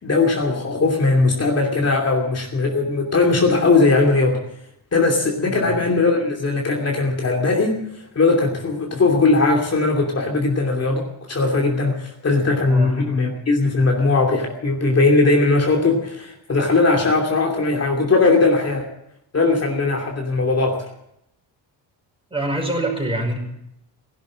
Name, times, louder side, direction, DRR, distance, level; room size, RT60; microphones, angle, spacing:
voice 1, 0.0-4.4 4.9-18.9 19.3-20.8, left 3 dB, 35° left, 0 dB, 2.8 m, -19 dB
voice 2, 22.3-23.4, right 1 dB, 10° right, 1 dB, 5.4 m, -25 dB
16.0 x 11.5 x 7.7 m, 0.78 s
cardioid pair, 110°, 43 cm